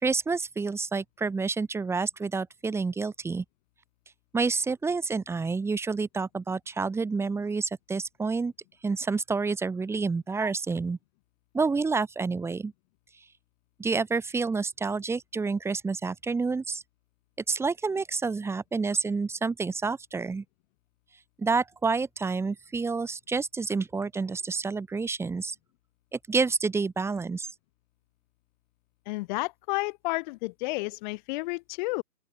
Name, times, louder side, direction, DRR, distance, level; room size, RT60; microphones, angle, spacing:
voice 1, 0.0-3.4 4.3-8.5 8.8-11.0 11.5-12.7 13.8-16.8 17.5-20.4 21.4-25.6 26.1-27.5, right 4 dB, 5° right, 3.6 m, -29 dB
voice 2, 29.1-32.0, left 23 dB, 30° left, 6.7 m, -31 dB
open air
hypercardioid pair, 150°, 49 cm